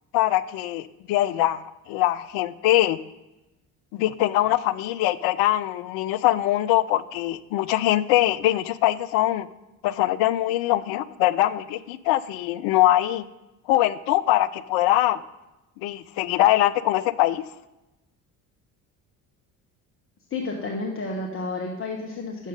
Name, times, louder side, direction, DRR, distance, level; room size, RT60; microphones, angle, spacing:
voice 1, 0.1-3.0 3.9-9.5 9.8-13.2 13.7-15.2 15.8-17.4, left 15 dB, 55° left, 15 dB, 0.5 m, -22 dB
voice 2, 20.3-22.5, left 3 dB, 30° left, 0 dB, 1.1 m, -31 dB
7.4 x 6.2 x 5.2 m, 0.99 s
figure-of-eight pair, 55°, 45 cm